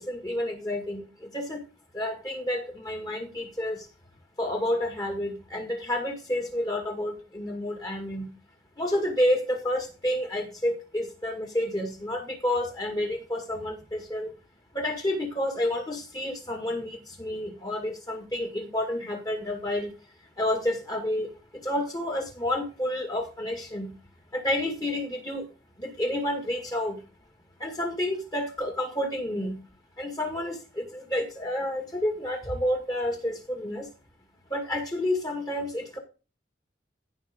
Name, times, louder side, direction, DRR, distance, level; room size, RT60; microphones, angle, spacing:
voice 1, 0.0-1.6 1.9-3.9 4.4-8.3 8.8-14.3 14.7-19.9 20.4-21.3 21.6-23.9 24.3-25.5 25.8-27.0 27.6-29.6 30.0-33.9 34.5-36.0, left 1 dB, 20° left, 3 dB, 2.0 m, -30 dB
15.5 x 5.5 x 3.7 m, 0.31 s
head